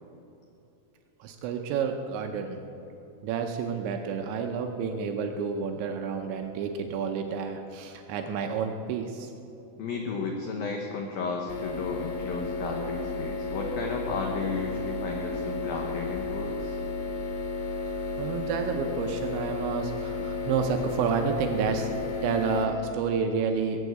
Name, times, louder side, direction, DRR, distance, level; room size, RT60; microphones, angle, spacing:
voice 1, 1.2-2.6 3.2-9.3 18.2-21.9 22.2-23.9, right 6 dB, 80° right, 5 dB, 2.8 m, -30 dB
voice 2, 9.8-16.8, left 4 dB, 90° left, 1 dB, 2.0 m, -33 dB
sound 1, 11.5-22.7, left 3 dB, 65° left, 3.2 m, -33 dB
21.0 x 7.2 x 8.0 m, 2.9 s
omnidirectional pair, 5.8 m